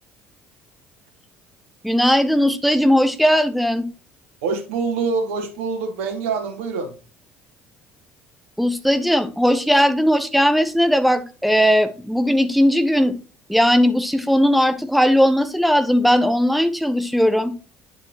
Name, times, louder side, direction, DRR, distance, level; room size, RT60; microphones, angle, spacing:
voice 1, 1.8-3.9 8.6-13.1 13.5-17.5, equal, ahead, 1.1 m, -18 dB
voice 2, 4.4-7.0, right 4 dB, 75° right, 1.6 m, -25 dB
10.0 x 5.0 x 3.1 m
figure-of-eight pair, 55°, 7 cm